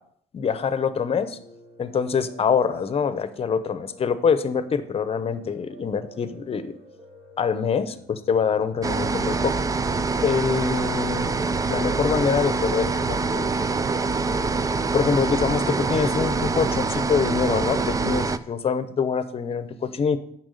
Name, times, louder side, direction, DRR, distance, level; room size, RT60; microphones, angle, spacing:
voice 1, 0.3-1.4 1.8-6.7 7.4-9.5 10.2-11.4 11.7-13.5 14.9-20.2, left 6 dB, 35° left, 13 dB, 0.8 m, -25 dB
Piano, 1.0-14.7, right 1 dB, 55° right, 2.4 m, -49 dB
sound 1, 8.8-18.4, right 4 dB, 20° right, 0.4 m, -25 dB
8.9 x 6.0 x 6.5 m, 0.69 s
cardioid pair, 110°, 17 cm